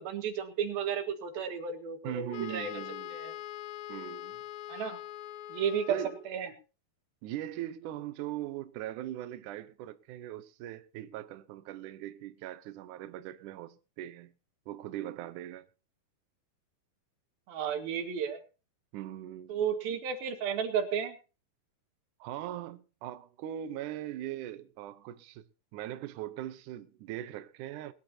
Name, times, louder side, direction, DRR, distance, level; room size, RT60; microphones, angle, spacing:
voice 1, 0.0-2.7 3.1-3.3 4.7-5.0 5.5-6.0 6.3-6.5 17.5-18.4 19.5-21.2, right 7 dB, 90° right, 3.6 m, -33 dB
voice 2, 2.0-3.1 3.9-4.4 5.9-6.2 7.2-14.3 14.7-15.7 18.9-19.6 22.2-25.4 25.7-27.9, right 12 dB, 70° right, 2.1 m, -40 dB
Wind instrument woodwind instrument, 2.3-6.4, left 13 dB, 75° left, 1.8 m, -43 dB
21.0 x 13.0 x 2.8 m
omnidirectional pair, 4.1 m